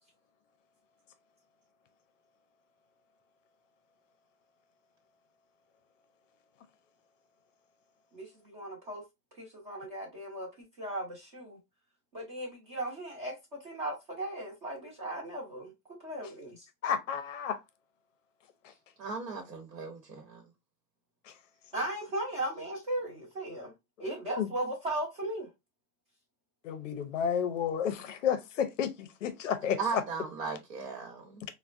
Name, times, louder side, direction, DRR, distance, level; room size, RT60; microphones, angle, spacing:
voice 1, 8.1-9.0 9.4-10.5 10.8-11.6 12.1-15.7 16.0-16.6 21.7-23.7 24.0-25.5, right 1 dB, 30° right, 0.8 m, -37 dB
voice 2, 16.8-17.6 18.6-18.7 21.3-21.4 24.0-24.1 24.4-24.5 26.6-30.0, left 8 dB, 55° left, 0.5 m, -31 dB
voice 3, 19.0-20.5 29.8-31.4, right 4 dB, 80° right, 1.0 m, -37 dB
3.5 x 2.1 x 2.4 m
supercardioid pair, 180°, 47 cm